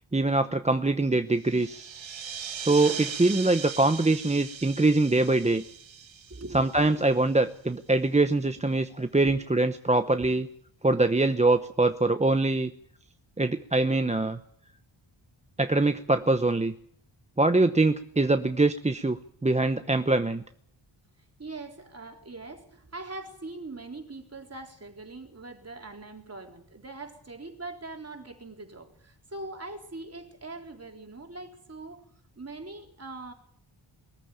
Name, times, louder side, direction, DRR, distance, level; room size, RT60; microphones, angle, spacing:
voice 1, 0.1-1.9 2.6-5.6 6.5-10.5 10.8-12.7 13.4-14.4 15.6-16.7 17.4-20.4, right 2 dB, 15° right, 9 dB, 0.8 m, -23 dB
sound 1, 1.4-7.5, right 7 dB, 70° right, 1.6 m, -39 dB
voice 2, 6.3-7.0 9.2-9.3 21.4-32.0 32.4-33.3, right 2 dB, 30° right, 3 dB, 3.9 m, -42 dB
22.0 x 14.5 x 9.1 m, 0.67 s
wide cardioid pair, 130°, 47 cm